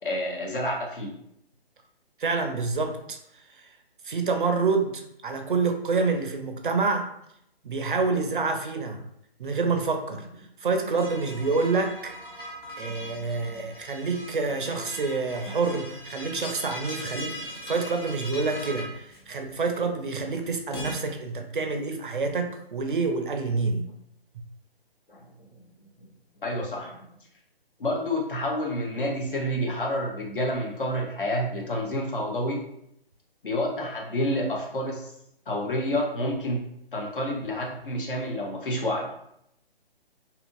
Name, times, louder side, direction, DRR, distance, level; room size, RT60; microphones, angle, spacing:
voice 1, 0.0-1.1 12.9-13.7 17.3-17.4 25.1-25.2 25.6-25.7 26.4-27.1 27.8-32.6 33.4-35.1 35.5-36.6 36.9-39.1, left 1 dB, 60° left, 0 dB, 0.8 m, -29 dB
voice 2, 2.2-3.2 3.5-3.7 4.0-4.9 5.2-7.1 7.6-9.0 9.4-12.1 12.4-12.5 12.8-23.9, right 4 dB, 55° right, 5 dB, 0.5 m, -27 dB
sound 1, 10.9-21.0, equal, 25° left, 0.5 m, -40 dB
2.7 x 2.5 x 2.5 m, 0.75 s
figure-of-eight pair, 140°, 31 cm